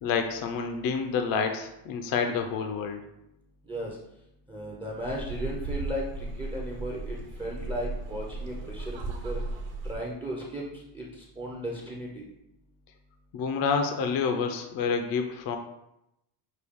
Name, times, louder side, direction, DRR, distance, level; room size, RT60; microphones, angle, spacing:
voice 1, 0.0-3.0 13.3-15.6, left 5 dB, 50° left, 5 dB, 0.5 m, -28 dB
voice 2, 3.7-4.0 4.5-9.4 9.8-10.6 10.9-12.3, equal, 10° right, -3 dB, 0.5 m, -36 dB
sound 1, 5.0-10.0, right 2 dB, 65° right, 1.1 m, -36 dB
6.2 x 2.3 x 3.5 m, 0.85 s
cardioid pair, 140°, 48 cm